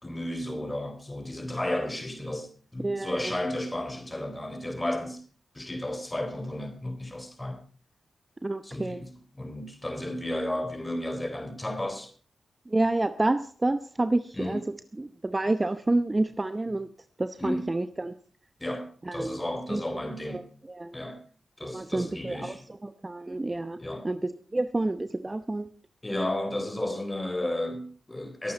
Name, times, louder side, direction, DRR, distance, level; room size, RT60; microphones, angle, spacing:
voice 1, 0.0-5.2 5.5-7.6 8.6-12.1 14.3-14.6 17.4-17.7 18.6-20.4 20.9-21.2 21.6-22.6 23.8-24.1 26.0-28.5, left 1 dB, 20° left, 3.6 m, -33 dB
voice 2, 2.8-3.3 8.4-9.0 12.7-14.6 14.9-16.9 17.2-18.1 19.0-19.4 19.7-20.4 20.7-21.0 21.7-22.6 22.8-24.2 24.5-25.7, right 2 dB, 25° right, 0.8 m, -29 dB
22.0 x 8.5 x 4.4 m
cardioid pair, 55°, 0 cm